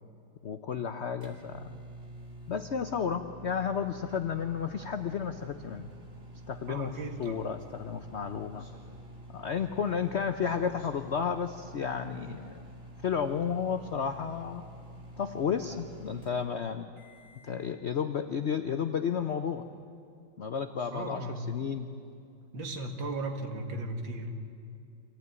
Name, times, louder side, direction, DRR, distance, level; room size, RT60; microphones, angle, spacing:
voice 1, 0.4-1.8 2.5-5.9 6.5-6.9 7.2-8.7 9.3-12.5 13.0-14.6 15.2-16.9 17.4-19.6 20.4-21.9, left 7 dB, 70° left, 8 dB, 0.6 m, -32 dB
sound 1, 0.6-17.6, right 1 dB, 30° right, 2.5 m, -48 dB
Speech synthesizer, 3.7-4.0 5.1-5.6 7.1-7.4 8.6-9.1 10.4-10.9 12.2-12.7 14.0-14.5 15.9-16.3 17.5-17.8 19.1-19.5 20.7-21.3, equal, 15° right, 3.0 m, -57 dB
voice 2, 6.7-7.5 20.9-21.4 22.5-24.4, right 2 dB, 80° right, 4 dB, 2.5 m, -36 dB
25.0 x 15.5 x 9.5 m, 2.5 s
omnidirectional pair, 2.1 m